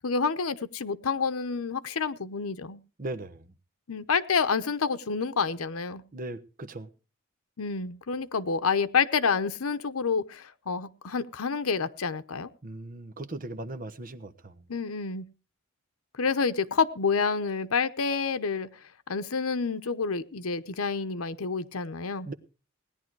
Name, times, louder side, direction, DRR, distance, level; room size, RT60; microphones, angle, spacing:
voice 1, 0.0-2.8 3.9-6.0 7.6-12.5 14.7-15.3 16.2-18.7 19.1-22.3, left 5 dB, 90° left, 0.8 m, -28 dB
voice 2, 3.0-3.5 6.1-6.9 12.6-14.6 22.3-22.4, right 2 dB, 40° right, 1.1 m, -38 dB
17.5 x 10.5 x 4.7 m
head